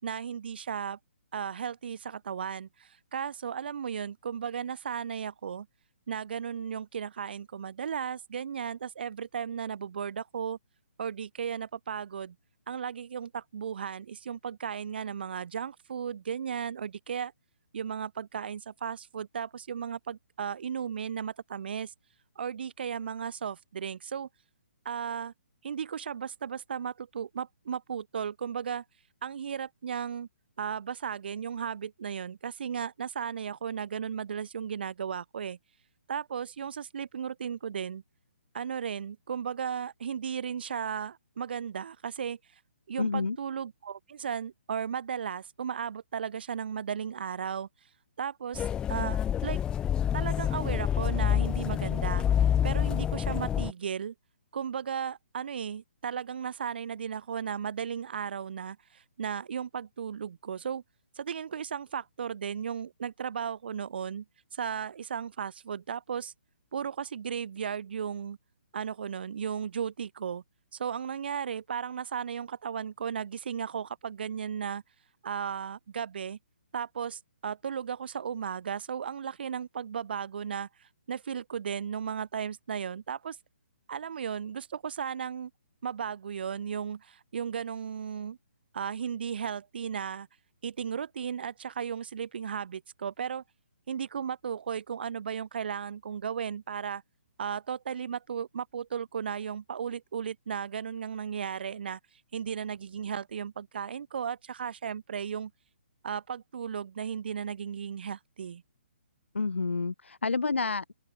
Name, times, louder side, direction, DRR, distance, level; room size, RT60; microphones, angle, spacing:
voice 1, 0.0-1.0 1.3-5.7 6.1-10.6 11.0-12.4 12.7-17.3 17.7-21.9 22.4-24.3 24.8-25.3 25.6-28.8 29.2-30.3 30.6-35.6 36.1-38.0 38.5-42.4 42.9-47.7 48.2-49.6 50.1-54.1 54.5-60.8 61.2-64.2 64.5-66.3 66.7-68.4 68.7-70.4 70.7-74.8 75.2-76.4 76.7-83.4 83.9-85.5 85.8-88.4 88.7-90.3 90.6-93.4 93.9-97.0 97.4-102.0 102.3-105.5 106.0-108.6, right 7 dB, 55° right, 5.8 m, -35 dB
voice 2, 43.0-43.4 109.3-110.9, left 4 dB, 75° left, 1.7 m, -29 dB
sound 1, 48.5-53.7, left 9 dB, 15° left, 1.1 m, -27 dB
open air
figure-of-eight pair, 135°, 7 cm